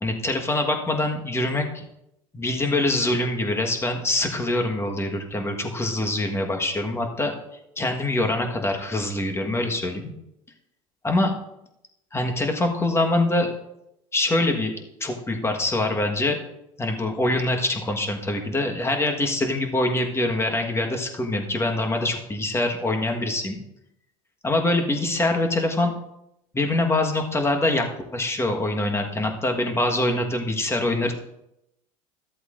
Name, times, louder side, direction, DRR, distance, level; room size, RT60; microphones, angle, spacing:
voice 1, 0.0-1.8 2.3-7.3 7.8-10.1 11.0-11.3 12.1-13.5 14.1-16.4 16.8-23.6 24.4-25.9 26.5-27.9 28.1-31.1, left 2 dB, 15° left, 3 dB, 1.4 m, -24 dB
14.0 x 7.9 x 2.6 m, 0.83 s
hypercardioid pair, 90°, 18 cm